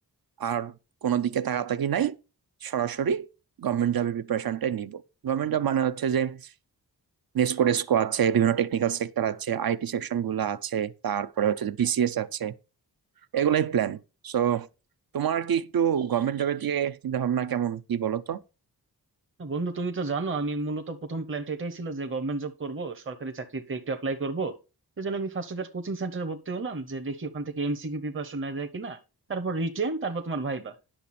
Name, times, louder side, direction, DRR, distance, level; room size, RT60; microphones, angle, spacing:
voice 1, 0.4-0.7 1.0-2.2 2.6-3.3 3.6-6.4 7.3-12.5 13.3-14.0 14.2-14.7 15.1-18.4, right 9 dB, 65° right, 0.6 m, -26 dB
voice 2, 19.4-24.6 25.0-29.0 29.3-30.7, right 3 dB, 30° right, 0.8 m, -31 dB
10.0 x 6.7 x 4.2 m
wide cardioid pair, 90°, 39 cm